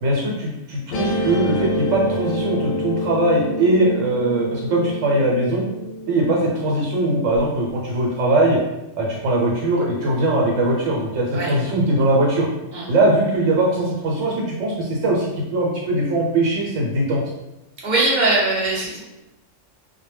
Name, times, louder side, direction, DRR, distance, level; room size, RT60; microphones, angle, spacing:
voice 1, 0.0-5.6 6.1-8.6 9.0-12.5 12.9-17.2, right 1 dB, 80° right, -2 dB, 0.9 m, -20 dB
Guitar, 0.9-7.4, left 1 dB, 90° left, 1.0 m, -27 dB
voice 2, 17.8-19.0, right 2 dB, 45° right, -5 dB, 0.8 m, -20 dB
2.1 x 2.1 x 3.2 m, 0.95 s
omnidirectional pair, 1.3 m